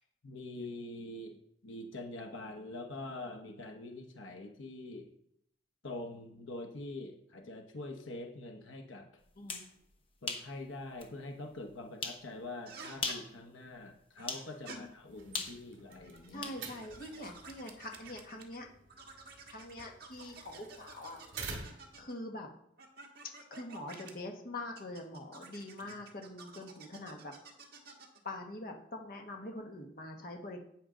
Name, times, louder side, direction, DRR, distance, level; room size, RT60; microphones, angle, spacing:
voice 1, 0.2-5.1 5.8-9.1 10.2-16.5 25.8-26.0, left 2 dB, 80° left, 4 dB, 1.1 m, -44 dB
sound 1, 9.3-9.7 10.3-10.5 11.0-11.1 12.0-12.2 12.9-13.3 14.3-14.5 15.3-16.6, left 4 dB, 30° left, 1.1 m, -38 dB
sound 2, 12.7-13.2 14.2-14.8 15.8-18.6 18.9-22.2 22.8-24.1 24.8-28.2, right 4 dB, 50° right, 1.5 m, -51 dB
sound 3, 15.1-22.0, right 4 dB, 65° right, 2.1 m, -49 dB
voice 2, 16.3-18.7 19.5-21.2 22.0-22.5 23.5-27.3 28.2-30.6, left 1 dB, 45° left, 2 dB, 1.3 m, -44 dB
10.5 x 8.9 x 3.8 m, 0.74 s
head